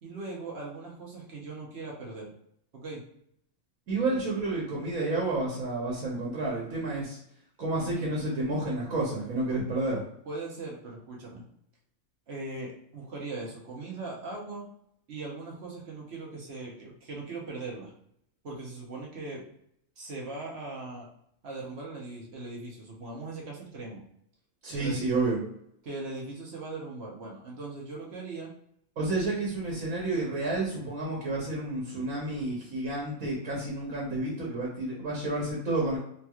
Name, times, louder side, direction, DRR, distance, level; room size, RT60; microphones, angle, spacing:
voice 1, 0.0-2.3 2.7-3.0 10.3-11.4 12.3-14.7 15.1-17.9 18.4-19.4 20.0-21.1 21.4-24.0 24.7-25.0 25.8-28.5, right 3 dB, 55° right, -2 dB, 1.0 m, -39 dB
voice 2, 3.9-7.2 7.6-10.0 24.6-25.4 29.0-36.0, right 2 dB, 90° right, -4 dB, 1.4 m, -30 dB
3.5 x 2.9 x 2.3 m, 0.70 s
omnidirectional pair, 1.4 m